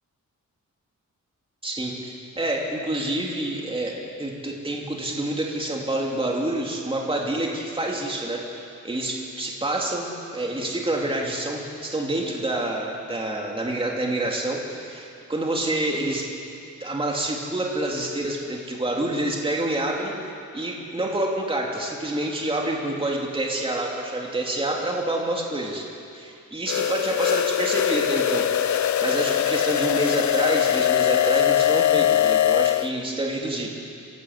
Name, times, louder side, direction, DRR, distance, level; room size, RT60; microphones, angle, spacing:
voice 1, 1.6-8.5 8.8-16.3 16.8-20.1 20.5-33.7, right 1 dB, 15° right, -1 dB, 2.7 m, -27 dB
sound 1, 26.7-32.9, left 11 dB, 65° left, 0.6 m, -21 dB
26.0 x 17.5 x 8.1 m, 2.6 s
wide cardioid pair, 170°, 31 cm